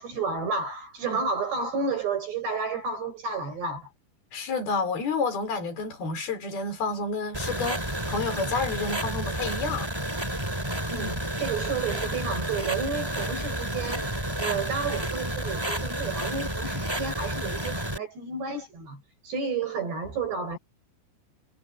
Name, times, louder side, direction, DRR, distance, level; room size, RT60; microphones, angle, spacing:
voice 1, 0.0-3.9 10.9-20.6, right 4 dB, 60° right, 8.7 m, -31 dB
voice 2, 4.3-9.9, left 4 dB, 50° left, 6.3 m, -30 dB
sound 1, 7.3-18.0, right 1 dB, 5° right, 3.9 m, -31 dB
omnidirectional pair, 5.6 m